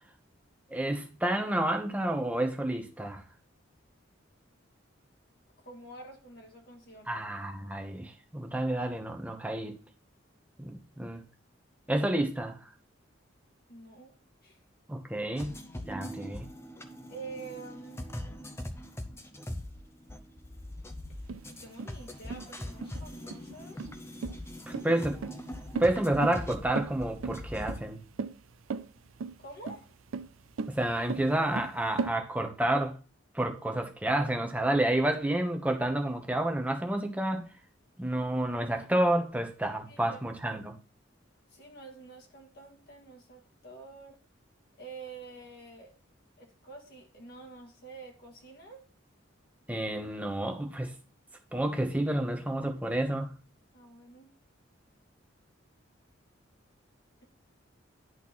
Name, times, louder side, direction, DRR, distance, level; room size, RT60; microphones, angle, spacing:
voice 1, 0.7-3.2 7.1-9.8 10.6-11.2 11.9-12.7 14.9-16.4 24.7-25.3 25.8-28.0 30.7-33.0 33.3-37.5 38.0-40.7 49.7-50.9 51.5-53.3, right 1 dB, 5° right, 1.0 m, -30 dB
voice 2, 5.6-7.2 13.7-14.6 17.1-18.7 21.1-21.2 21.5-23.9 24.6-24.8 29.4-29.9 39.9-40.2 40.5-40.6 41.5-44.2 44.8-45.9 46.4-48.8 53.7-54.3, right 3 dB, 55° left, 1.8 m, -48 dB
sound 1, 15.4-27.8, left 1 dB, 15° left, 0.7 m, -42 dB
sound 2, 21.3-32.1, right 4 dB, 90° right, 0.5 m, -37 dB
10.5 x 4.1 x 4.2 m
head